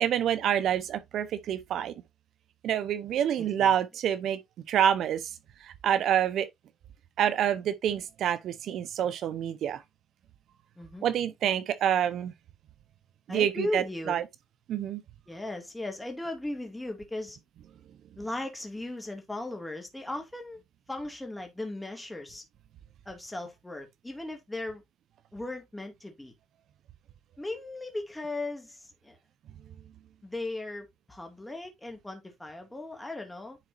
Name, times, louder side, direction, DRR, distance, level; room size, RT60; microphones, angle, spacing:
voice 1, 0.0-1.9 2.6-4.4 4.7-5.3 5.6-6.5 7.2-9.8 11.0-12.3 13.3-14.2 14.7-15.0, right 9 dB, 70° right, 0.9 m, -27 dB
voice 2, 3.4-3.7 10.8-11.1 13.3-14.2 15.3-17.4 18.2-20.6 20.9-22.4 23.1-24.8 25.3-26.3 27.4-29.2 30.2-33.6, left 2 dB, 10° left, 2.2 m, -37 dB
10.0 x 4.1 x 2.6 m
supercardioid pair, 75°, 0 cm